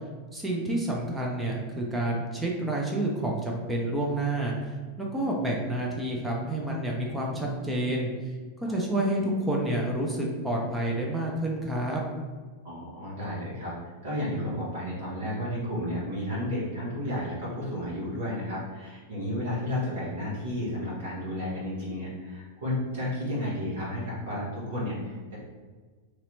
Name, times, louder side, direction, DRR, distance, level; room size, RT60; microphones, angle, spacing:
voice 1, 0.3-8.1 8.6-12.0, right 1 dB, 10° right, -2 dB, 0.5 m, -29 dB
voice 2, 12.6-25.4, left 1 dB, 60° right, -7 dB, 1.4 m, -32 dB
3.0 x 2.8 x 2.6 m, 1.4 s
figure-of-eight pair, 90°, 0 cm